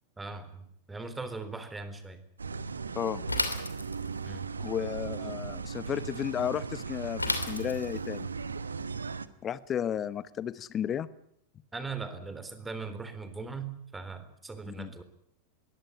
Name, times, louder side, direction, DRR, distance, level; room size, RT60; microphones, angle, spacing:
voice 1, 0.2-2.2 4.2-4.5 11.7-15.0, right 4 dB, 10° right, 11 dB, 3.6 m, -39 dB
sound 1, 2.4-9.3, right 5 dB, 75° right, 1.1 m, -37 dB
Bicycle / Mechanisms, 3.3-4.3 7.2-8.1, left 2 dB, 85° left, 2.8 m, -32 dB
voice 2, 4.6-8.3 9.4-11.1 14.7-14.9, left 9 dB, 25° left, 18 dB, 1.0 m, -33 dB
22.5 x 17.0 x 10.0 m, 0.72 s
figure-of-eight pair, 90°, 0 cm